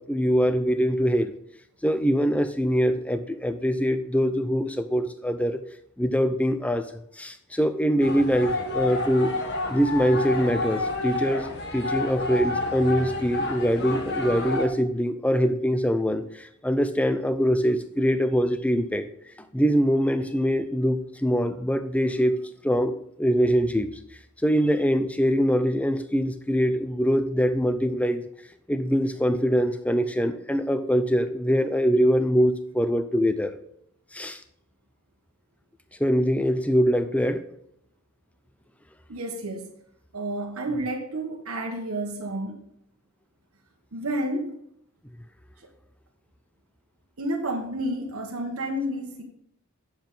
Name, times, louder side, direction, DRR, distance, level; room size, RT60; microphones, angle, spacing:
voice 1, 0.0-1.3 1.8-5.6 6.0-6.9 7.2-9.3 9.7-19.1 19.5-24.0 24.4-28.2 28.7-33.6 34.1-34.4 36.0-37.4, equal, 5° left, 10 dB, 0.5 m, -23 dB
sound 1, 8.0-14.7, left 2 dB, 50° left, 1.2 m, -30 dB
voice 2, 39.1-39.7 40.1-42.6 43.9-44.5 47.2-49.2, right 1 dB, 75° right, 1 dB, 1.3 m, -30 dB
9.3 x 7.1 x 3.9 m, 0.73 s
head